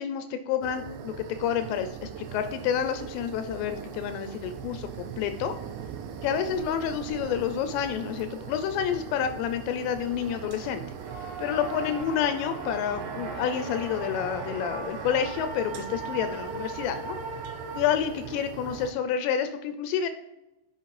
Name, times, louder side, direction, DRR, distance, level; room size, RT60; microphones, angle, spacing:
voice 1, 0.0-5.6 6.2-10.8 11.4-17.2 17.7-20.1, left 8 dB, 85° left, 9 dB, 2.5 m, -29 dB
sound 1, 0.6-18.9, right 8 dB, 85° right, 3.0 m, -41 dB
sound 2, 2.3-17.8, right 3 dB, 65° right, 2.3 m, -41 dB
8.2 x 5.6 x 3.2 m, 0.99 s
omnidirectional pair, 5.5 m